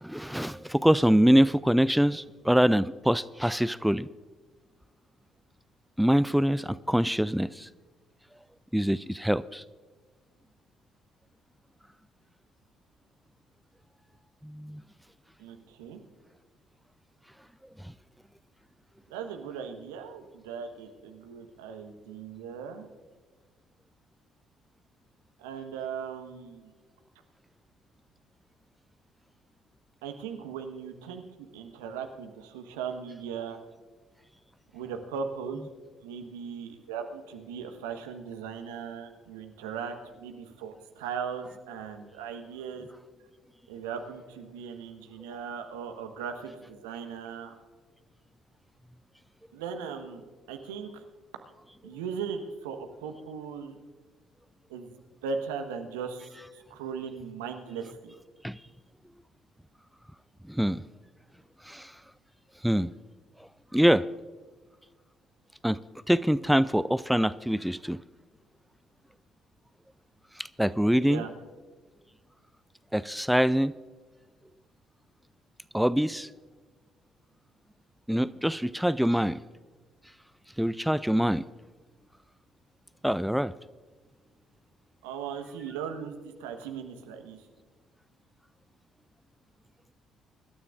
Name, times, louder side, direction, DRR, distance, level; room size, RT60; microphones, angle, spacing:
voice 1, 0.0-4.1 6.0-7.7 8.7-9.6 14.4-14.8 17.8-17.9 58.4-58.6 60.5-60.8 61.6-61.9 62.6-62.9 63.7-64.1 65.6-65.8 66.1-68.0 70.4-71.2 72.9-73.7 75.7-76.3 78.1-79.4 80.6-81.4 83.0-83.5, equal, ahead, 0.4 m, -24 dB
voice 2, 15.4-16.0 19.1-22.9 25.4-26.7 30.0-33.6 34.7-35.7 36.0-42.9 43.7-47.5 49.5-50.2 50.5-51.0 51.8-53.7 54.7-54.9 55.2-58.1 71.0-71.3 85.0-87.4, right 6 dB, 75° right, 1.3 m, -38 dB
24.5 x 12.5 x 2.5 m
figure-of-eight pair, 45°, 0 cm